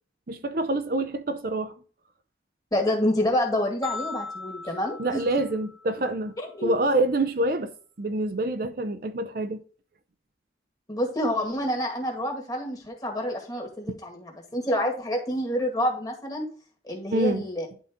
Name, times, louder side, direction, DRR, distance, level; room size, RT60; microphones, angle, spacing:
voice 1, 0.3-1.7 5.0-6.3 6.6-7.7 8.0-9.6 17.1-17.4, right 2 dB, 50° right, 0.6 m, -26 dB
voice 2, 2.7-5.3 6.6-6.7 10.9-16.5 16.8-17.7, left 1 dB, 20° left, 2.0 m, -28 dB
sound 1, 3.8-6.2, left 4 dB, ahead, 0.5 m, -38 dB
11.0 x 3.9 x 3.7 m
head